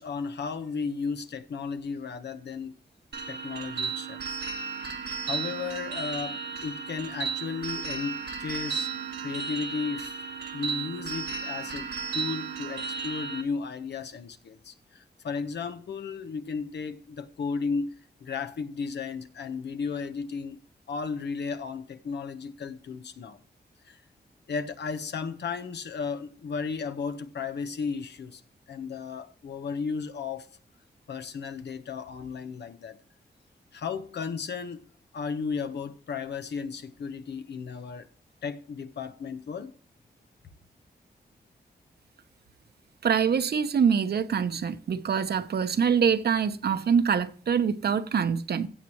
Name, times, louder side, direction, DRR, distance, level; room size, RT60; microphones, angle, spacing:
voice 1, 0.0-2.8 3.3-4.4 5.2-8.9 9.2-10.1 10.5-17.9 18.2-20.6 20.9-23.4 23.8-24.0 24.5-28.4 28.7-30.5 31.1-33.0 33.7-34.8 35.1-38.1 38.4-39.7, left 5 dB, 85° left, 1.2 m, -34 dB
sound 1, 3.1-13.4, right 6 dB, 85° right, 1.6 m, -34 dB
voice 2, 43.0-48.7, right 7 dB, 70° right, 1.0 m, -25 dB
16.0 x 7.3 x 3.1 m
wide cardioid pair, 105°, 17 cm